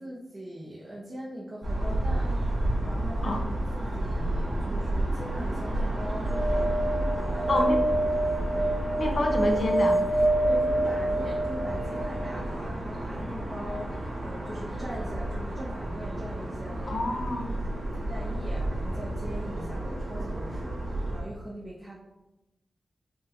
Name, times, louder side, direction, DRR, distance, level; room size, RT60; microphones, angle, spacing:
voice 1, 0.0-2.4 2.8-7.7 10.4-17.3 17.6-21.9, equal, 35° right, -6 dB, 0.9 m, -41 dB
sound 1, 1.6-21.2, right 1 dB, 70° right, 1.5 m, -31 dB
sound 2, 6.2-12.4 14.7-14.8 15.0-15.1, right 1 dB, 10° right, 0.5 m, -27 dB
voice 2, 7.5-7.8 9.0-10.0 16.9-17.5, left 2 dB, 65° left, 3 dB, 0.7 m, -27 dB
5.3 x 3.0 x 2.6 m, 0.98 s
cardioid pair, 65°, 0 cm